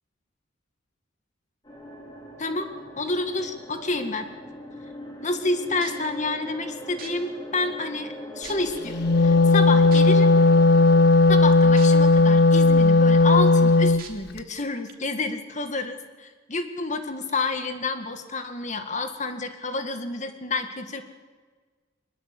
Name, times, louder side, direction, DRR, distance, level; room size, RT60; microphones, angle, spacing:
sound 1, 1.6-11.1, right 1 dB, 20° left, 4.3 m, -40 dB
voice 1, 3.0-4.3 5.2-10.3 11.3-21.0, left 3 dB, 40° left, 8 dB, 1.9 m, -29 dB
sound 2, 5.8-6.1 7.0-7.1 7.9-8.0 8.4-8.8 9.9-10.0 11.8-11.9 12.4-12.5 14.0-14.1 14.9-15.0, right 9 dB, 50° right, 2.8 m, -40 dB
Wind instrument woodwind instrument, 8.9-14.0, left 2 dB, 55° left, 0.7 m, -16 dB
22.5 x 20.5 x 8.5 m, 1.4 s
head